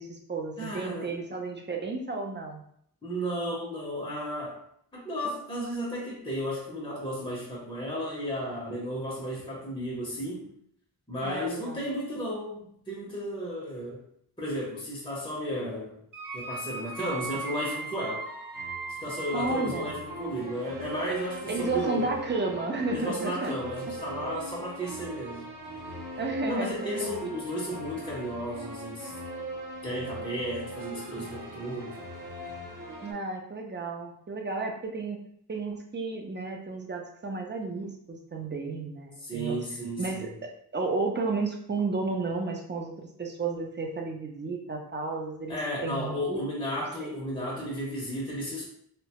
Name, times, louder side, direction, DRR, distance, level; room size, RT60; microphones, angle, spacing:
voice 1, 0.0-2.6 11.2-11.8 19.3-19.9 21.5-23.5 26.2-26.7 27.2-27.4 33.0-35.2 35.5-39.6 40.0-46.4 47.0-47.1, right 3 dB, 30° right, 2 dB, 0.5 m, -32 dB
voice 2, 0.6-1.1 3.0-4.6 4.9-10.5 11.1-14.0 14.4-16.0 16.3-18.3 19.0-22.1 22.9-25.5 26.5-29.2 29.8-32.0 39.2-40.4 45.5-48.7, equal, 10° left, -4 dB, 0.7 m, -34 dB
sound 1, 16.1-33.1, right 2 dB, 50° right, 0.8 m, -39 dB
2.8 x 2.2 x 2.8 m, 0.68 s
wide cardioid pair, 80°, 40 cm